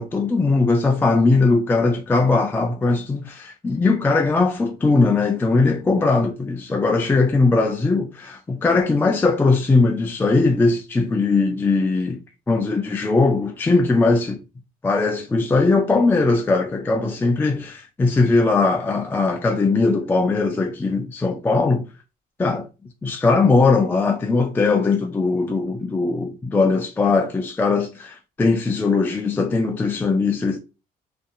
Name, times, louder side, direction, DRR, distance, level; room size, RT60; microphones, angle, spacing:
voice 1, 0.0-14.4 14.8-21.9 22.4-22.7 23.0-30.6, left 3 dB, 10° left, 0.3 m, -20 dB
2.6 x 2.5 x 2.3 m
cardioid pair, 110°, 17 cm